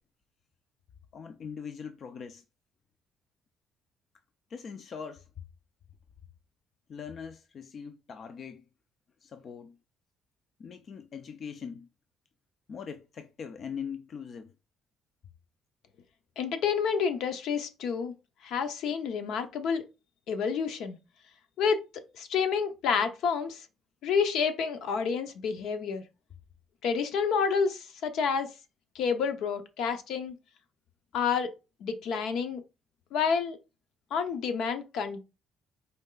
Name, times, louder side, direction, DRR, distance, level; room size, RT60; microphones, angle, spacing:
voice 1, 1.1-2.4 4.5-5.3 6.9-8.6 9.2-9.8 10.6-11.9 12.7-14.5, left 6 dB, 40° left, 0.4 m, -41 dB
voice 2, 16.4-18.1 18.4-19.8 20.3-21.0 21.6-21.8 22.1-23.6 24.0-26.0 26.8-28.5 28.9-30.4 31.1-31.5 31.8-32.6 33.1-33.6 34.1-35.2, left 6 dB, 65° left, 0.8 m, -29 dB
4.4 x 3.2 x 3.7 m
cardioid pair, 160°, 0 cm